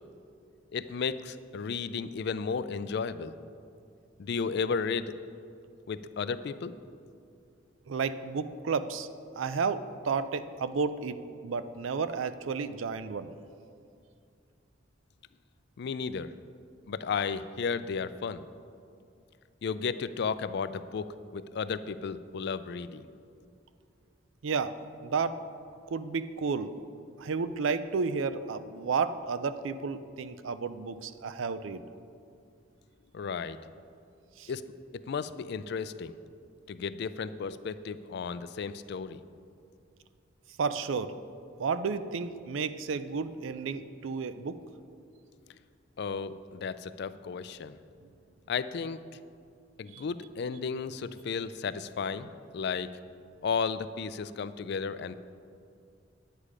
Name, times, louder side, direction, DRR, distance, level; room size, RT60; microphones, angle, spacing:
voice 1, 0.7-3.3 4.2-5.1 5.9-6.7 15.8-16.3 16.9-18.4 19.6-21.1 21.3-23.1 33.1-33.6 34.5-34.6 35.1-36.2 36.7-39.2 46.0-47.8 48.5-49.0 49.8-52.9 53.4-55.1, left 5 dB, 60° left, 13 dB, 0.4 m, -33 dB
voice 2, 7.9-9.1 9.4-13.3 24.4-24.7 25.0-25.4 25.9-26.8 27.2-31.8 34.4-34.5 40.6-41.2 41.6-44.6 49.9-50.0, right 5 dB, 85° right, 13 dB, 0.5 m, -32 dB
10.0 x 8.3 x 4.9 m, 2.4 s
head